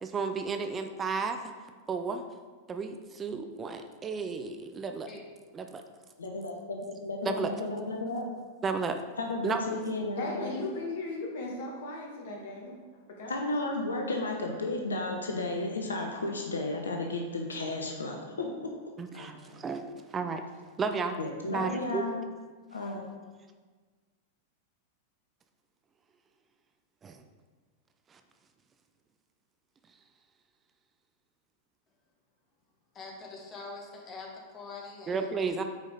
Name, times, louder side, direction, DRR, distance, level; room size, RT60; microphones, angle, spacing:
voice 1, 0.0-1.4 1.9-2.2 2.7-5.1 5.5-5.8 7.3-7.5 8.6-9.0 9.4-9.8 19.0-19.8 20.1-20.4 20.8-21.2 21.5-22.0 27.0-27.2 35.1-35.6, right 5 dB, 20° right, 7 dB, 0.5 m, -32 dB
voice 2, 6.2-8.3 9.2-10.5 13.3-18.7 21.2-22.2 22.7-23.0, left 2 dB, 75° left, 2 dB, 0.8 m, -33 dB
voice 3, 10.2-12.7 13.2-13.3 19.1-19.6, left 2 dB, 60° left, -1 dB, 1.8 m, -37 dB
voice 4, 32.9-34.3 34.5-35.3, left 3 dB, 30° left, 0 dB, 1.7 m, -44 dB
8.3 x 5.0 x 3.9 m, 1.5 s
figure-of-eight pair, 95°, 0 cm